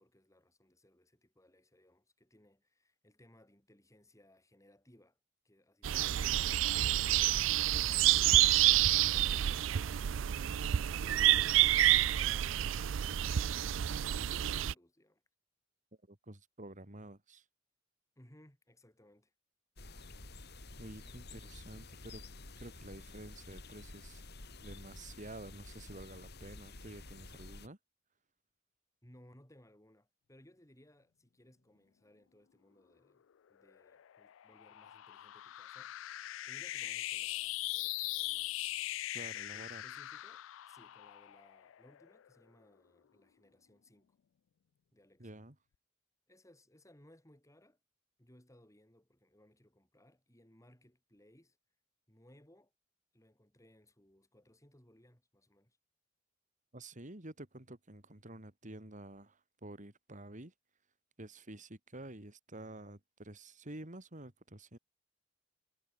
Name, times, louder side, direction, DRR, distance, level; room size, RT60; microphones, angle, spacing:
voice 1, 0.0-5.2 5.4-6.4 6.9-15.2 18.2-19.3 29.0-38.6 39.5-44.2 44.9-45.3 46.3-47.8 48.2-51.6 52.1-52.7 53.1-55.8, left 1 dB, 15° left, 5.6 m, -64 dB
sound 1, 5.8-14.7, right 13 dB, 75° right, 0.4 m, -28 dB
voice 2, 16.1-17.4 20.8-22.2 22.6-24.2 24.6-27.8 39.1-39.8 45.2-45.5 56.7-60.5 61.2-64.8, right 1 dB, 40° right, 3.4 m, -50 dB
sound 2, 19.8-27.7, left 2 dB, 55° left, 2.9 m, -51 dB
sound 3, 33.7-42.3, left 16 dB, 80° left, 0.3 m, -41 dB
head